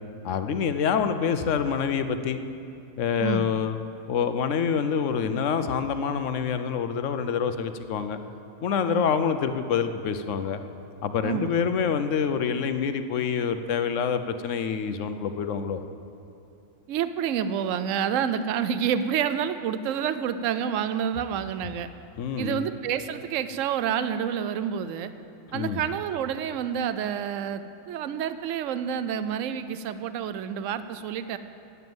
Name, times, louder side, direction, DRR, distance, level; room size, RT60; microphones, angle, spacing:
voice 1, 0.2-2.4 3.0-3.8 4.1-8.2 8.6-10.6 11.0-15.8 22.2-22.7 25.5-25.8, left 7 dB, 65° left, 9 dB, 1.0 m, -26 dB
voice 2, 11.2-11.7 16.9-21.9 22.4-25.1 25.5-31.4, right 8 dB, 70° right, 12 dB, 1.0 m, -28 dB
12.5 x 9.6 x 7.9 m, 2.7 s
omnidirectional pair, 1.5 m